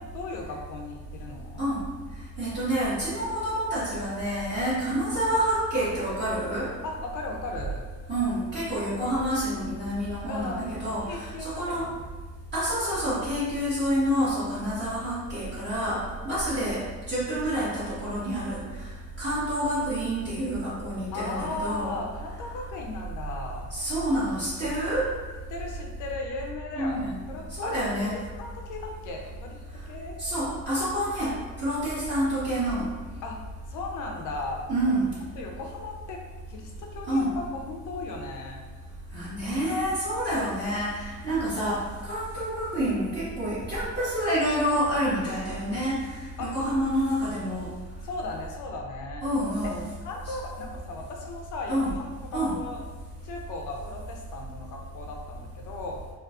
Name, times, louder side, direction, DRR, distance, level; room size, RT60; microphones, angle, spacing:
voice 1, 0.0-1.6 6.8-7.8 10.3-12.0 21.1-23.7 25.5-30.2 33.2-33.4 33.7-35.0 35.4-36.2 36.5-38.6 46.4-46.5 48.0-49.2 49.6-49.8 50.0-52.8 53.2-56.0, left 3 dB, 85° left, 1 dB, 0.6 m, -37 dB
voice 2, 2.4-6.7 8.1-11.9 12.5-16.8 17.1-18.9 19.2-21.9 23.7-25.1 26.8-27.2 27.6-28.2 30.2-31.3 31.6-32.8 34.7-35.1 37.1-37.3 39.1-47.7 49.2-49.8 50.2-50.3 51.7-51.9 52.3-52.5, equal, 35° right, -12 dB, 1.5 m, -28 dB
3.7 x 2.5 x 2.4 m, 1.3 s
cardioid pair, 90°, 30 cm